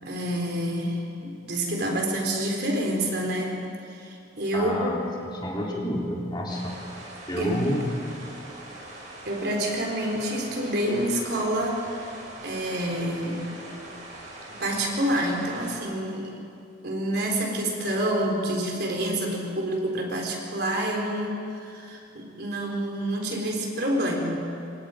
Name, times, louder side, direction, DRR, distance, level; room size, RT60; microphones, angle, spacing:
voice 1, 0.0-3.6 3.9-5.1 7.4-7.6 9.3-12.1 12.4-13.5 14.5-16.3 16.8-24.4, right 1 dB, 60° right, 0 dB, 4.1 m, -28 dB
voice 2, 4.5-6.8 7.3-7.9, equal, 25° left, -3 dB, 3.6 m, -29 dB
sound 1, 6.5-15.8, right 1 dB, 40° right, 5.8 m, -42 dB
27.5 x 24.5 x 5.1 m, 2.6 s
head